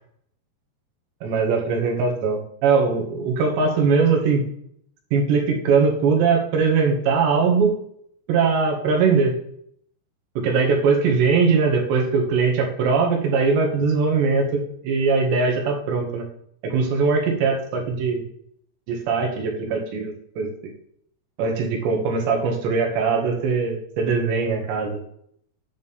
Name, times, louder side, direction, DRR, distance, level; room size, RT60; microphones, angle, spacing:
voice 1, 1.2-4.4 5.1-7.7 8.3-9.4 10.4-16.3 16.6-18.2 18.9-20.5 21.4-25.0, right 5 dB, 80° right, 1 dB, 4.2 m, -21 dB
9.8 x 9.0 x 3.6 m, 0.67 s
omnidirectional pair, 5.0 m